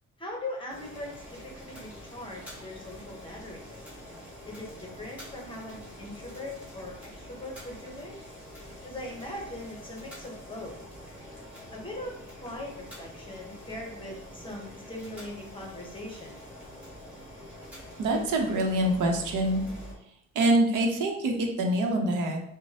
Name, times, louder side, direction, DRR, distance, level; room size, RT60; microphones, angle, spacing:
voice 1, 0.2-3.8 4.5-8.1 8.8-10.8 11.7-16.4, left 1 dB, 15° left, -1 dB, 0.8 m, -40 dB
Boiling, 0.7-19.9, equal, 5° right, 1.4 m, -46 dB
voice 2, 18.0-19.6 20.3-22.4, right 1 dB, 80° right, 2 dB, 0.8 m, -25 dB
6.1 x 2.2 x 2.8 m, 0.70 s
cardioid pair, 160°, 31 cm